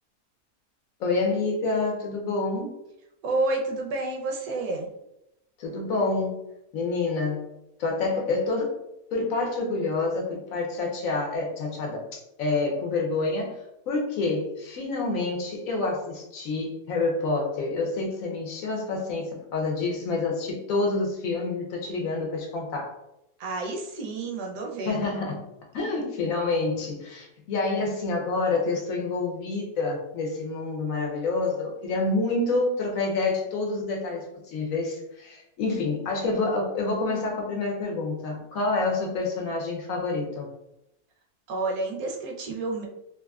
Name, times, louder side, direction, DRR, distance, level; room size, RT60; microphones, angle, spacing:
voice 1, 1.0-2.7 5.6-6.4 6.7-7.4 7.8-8.8 9.1-22.9 24.8-40.5, left 3 dB, 65° left, -1 dB, 1.0 m, -28 dB
voice 2, 3.2-4.9 23.4-25.0 41.5-42.9, right 2 dB, 75° right, 0 dB, 1.0 m, -29 dB
3.2 x 2.5 x 2.3 m, 0.85 s
omnidirectional pair, 1.7 m